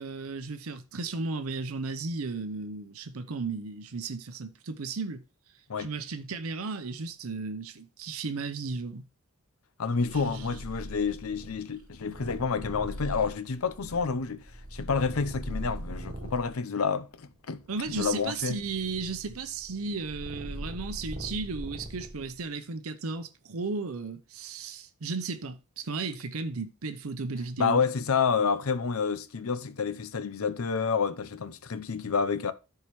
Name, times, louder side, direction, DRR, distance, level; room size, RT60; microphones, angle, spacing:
voice 1, 0.0-5.2 5.8-9.0 10.1-10.6 17.7-27.8, right 4 dB, 80° right, 0.7 m, -35 dB
voice 2, 9.8-14.4 14.7-18.6 27.6-32.5, left 5 dB, 80° left, 0.7 m, -29 dB
Purr, 10.0-16.5 17.2-22.4, equal, 40° right, 2.4 m, -41 dB
13.5 x 4.7 x 3.1 m
head